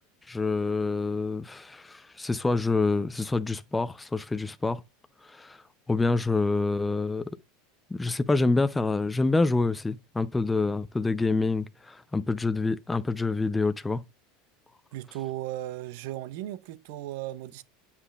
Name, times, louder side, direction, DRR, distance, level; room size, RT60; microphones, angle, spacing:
voice 1, 0.3-4.8 5.2-5.6 5.9-7.4 7.9-14.0, left 3 dB, 10° left, 0.5 m, -27 dB
voice 2, 14.9-17.6, right 14 dB, 70° right, 0.5 m, -36 dB
8.1 x 5.7 x 2.4 m
supercardioid pair, 105°, 0 cm